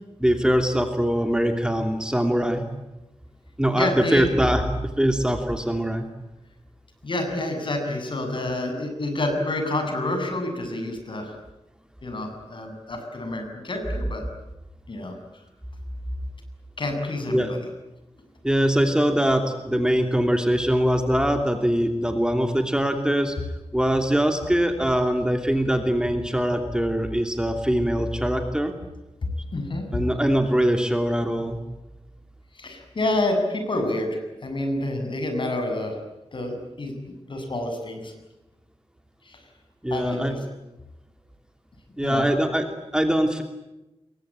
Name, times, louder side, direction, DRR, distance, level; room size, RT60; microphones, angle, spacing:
voice 1, 0.2-2.7 3.6-6.1 17.3-17.5 18.4-23.4 23.7-28.7 29.9-31.6 39.8-40.4 42.0-42.7 42.9-43.4, equal, 5° right, 5 dB, 2.9 m, -22 dB
voice 2, 3.7-4.3 7.0-11.3 12.0-14.2 14.9-15.1 16.8-17.4 29.5-29.9 32.5-35.9 36.3-36.9 37.3-38.1 39.2-39.4 39.9-40.4 42.0-42.3, left 1 dB, 50° left, 5 dB, 7.6 m, -28 dB
28.5 x 23.0 x 8.9 m, 0.98 s
wide cardioid pair, 125°, 10 cm